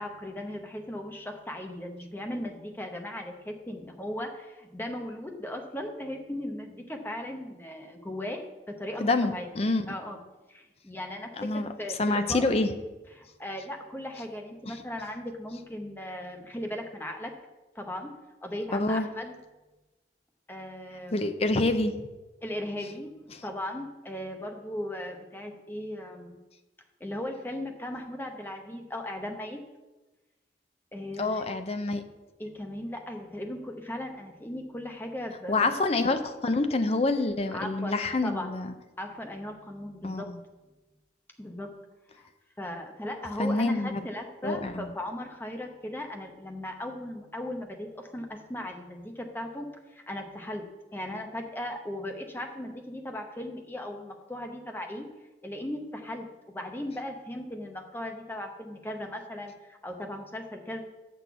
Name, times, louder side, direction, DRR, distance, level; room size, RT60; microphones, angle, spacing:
voice 1, 0.0-8.4 8.7-9.5 9.9-10.2 10.5-12.4 13.1-17.3 17.7-18.1 18.4-19.3 20.5-21.3 22.4-26.4 27.0-29.6 30.9-31.4 32.4-35.7 37.5-38.5 39.0-40.3 41.4-41.7 42.2-42.3 42.6-55.1 55.4-60.8, left 1 dB, 10° left, 3 dB, 0.8 m, -37 dB
voice 2, 9.0-9.9 11.4-11.7 12.0-12.7 14.7-14.8 18.7-19.1 21.1-21.9 31.2-32.0 35.5-38.7 40.0-40.4 43.4-44.0 44.4-44.9, left 2 dB, 35° left, 9 dB, 0.5 m, -27 dB
6.5 x 6.1 x 6.9 m, 1.1 s
head